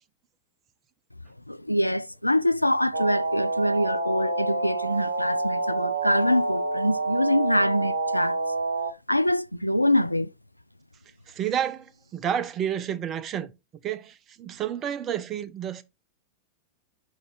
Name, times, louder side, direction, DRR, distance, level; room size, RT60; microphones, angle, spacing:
voice 1, 1.5-8.4 9.1-10.3, left 1 dB, 85° left, 0.3 m, -24 dB
sound 1, 2.9-8.9, right 2 dB, 75° right, 0.9 m, -27 dB
voice 2, 11.3-13.5 13.8-15.8, right 9 dB, 30° right, 0.8 m, -30 dB
6.2 x 5.1 x 3.7 m
figure-of-eight pair, 90°, 0 cm